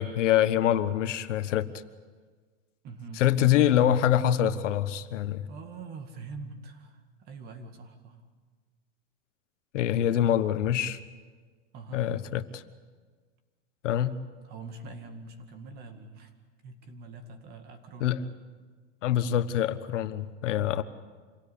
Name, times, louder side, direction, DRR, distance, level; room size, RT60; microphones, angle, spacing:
voice 1, 0.0-1.7 3.1-5.5 9.7-11.0 11.9-12.6 13.8-14.2 18.0-18.2 19.0-20.8, left 11 dB, 80° left, 12 dB, 1.3 m, -25 dB
voice 2, 2.8-3.2 5.5-8.2 10.0-10.4 11.7-12.1 14.4-16.3 16.6-18.2, right 3 dB, 25° right, 7 dB, 2.1 m, -44 dB
27.0 x 17.5 x 8.6 m, 1.5 s
supercardioid pair, 165°, 36 cm